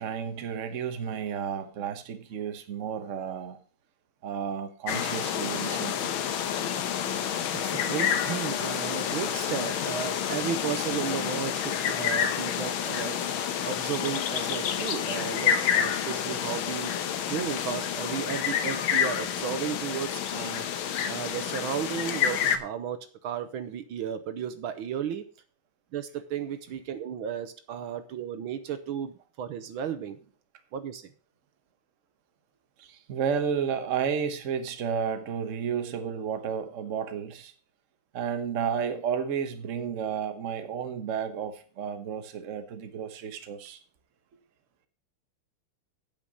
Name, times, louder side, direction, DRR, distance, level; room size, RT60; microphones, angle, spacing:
voice 1, 0.0-3.6 4.2-6.1 32.8-37.5 38.1-43.8, right 7 dB, 45° right, 8 dB, 1.2 m, -32 dB
sound 1, 4.9-22.6, left 8 dB, 70° left, 1.7 m, -29 dB
voice 2, 7.5-13.2 13.7-16.9 17.3-20.7 21.1-25.2 25.9-30.2 30.7-31.1, right 8 dB, 70° right, 10 dB, 1.6 m, -34 dB
8.8 x 7.0 x 6.2 m, 0.41 s
omnidirectional pair, 2.4 m